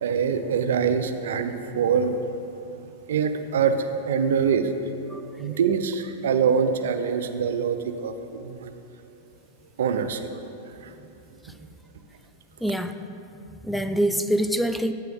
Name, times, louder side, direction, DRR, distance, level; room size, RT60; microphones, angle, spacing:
voice 1, 0.0-2.2 3.1-4.7 5.4-8.7 9.8-10.3 10.8-10.9, right 6 dB, 80° right, 9 dB, 0.5 m, -24 dB
voice 2, 5.1-5.6 11.4-11.5 12.6-13.0 13.5-14.9, right 1 dB, ahead, 9 dB, 0.3 m, -26 dB
9.1 x 7.6 x 3.5 m, 2.8 s
hypercardioid pair, 115°, 0 cm